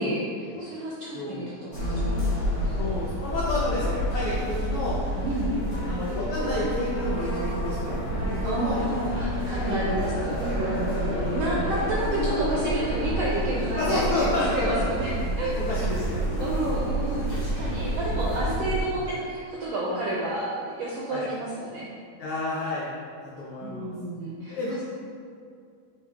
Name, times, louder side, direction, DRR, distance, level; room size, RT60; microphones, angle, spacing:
voice 1, 0.0-2.2 5.2-5.5 8.4-14.3 14.5-15.8 16.4-21.9 23.6-24.8, right 1 dB, 80° right, -5 dB, 1.4 m, -30 dB
voice 2, 1.1-1.5 2.7-5.0 5.9-8.8 9.5-10.1 11.1-11.4 13.7-14.9 15.4-16.6 18.3-18.4 19.0-19.1 21.1-21.2 22.2-22.9 23.2-23.9 24.5-24.8, left 2 dB, 80° left, -6 dB, 1.2 m, -30 dB
sound 1, 1.7-18.8, equal, 55° left, 0.8 m, -29 dB
7.0 x 4.5 x 3.6 m, 2.3 s
omnidirectional pair, 3.7 m